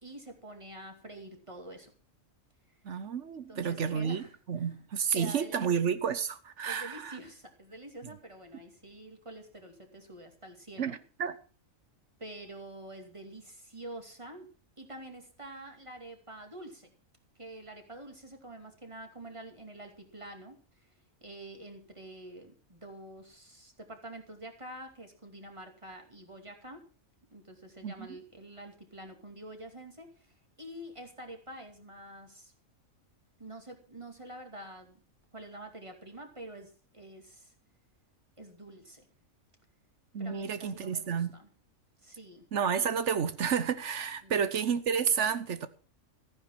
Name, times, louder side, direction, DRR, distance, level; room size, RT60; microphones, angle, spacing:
voice 1, 0.0-1.9 3.5-4.8 5.1-5.8 6.6-11.0 12.2-14.5 14.8-16.9 17.4-20.6 20.8-20.9 21.2-26.8 27.3-32.5 33.4-35.0 35.3-37.5 38.4-39.1 40.2-41.5 42.0-42.4 44.2-44.4, right 1 dB, 20° right, 2.6 m, -47 dB
voice 2, 2.8-7.2 10.8-11.3 27.8-28.2 40.1-41.3 42.5-45.7, right 7 dB, 60° right, 1.2 m, -31 dB
14.5 x 9.8 x 5.8 m
omnidirectional pair, 1.4 m